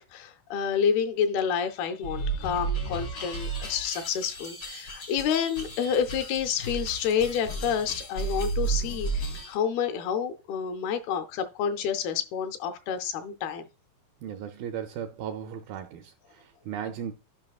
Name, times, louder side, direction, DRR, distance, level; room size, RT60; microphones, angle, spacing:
voice 1, 0.0-13.6, left 7 dB, 80° left, 2.4 m, -29 dB
sound 1, 2.0-9.6, right 3 dB, 65° left, 1.0 m, -33 dB
voice 2, 14.2-17.1, right 9 dB, 80° right, 2.1 m, -36 dB
11.5 x 5.4 x 2.3 m
omnidirectional pair, 4.7 m